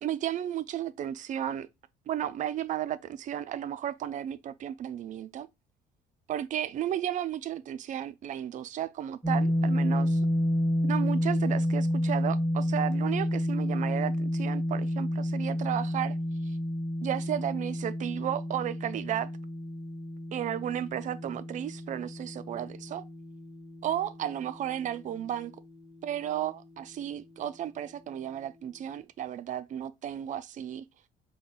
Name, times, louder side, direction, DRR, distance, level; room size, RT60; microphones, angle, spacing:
voice 1, 0.0-1.7 2.1-5.5 6.3-10.2 10.8-16.2 16.5-16.6 17.0-19.3 20.3-23.0 23.8-25.6 26.0-30.8, right 11 dB, 50° right, 0.4 m, -33 dB
sound 1, 9.2-25.2, equal, 5° right, 0.8 m, -30 dB
3.9 x 2.3 x 3.7 m
cardioid pair, 110°, 17 cm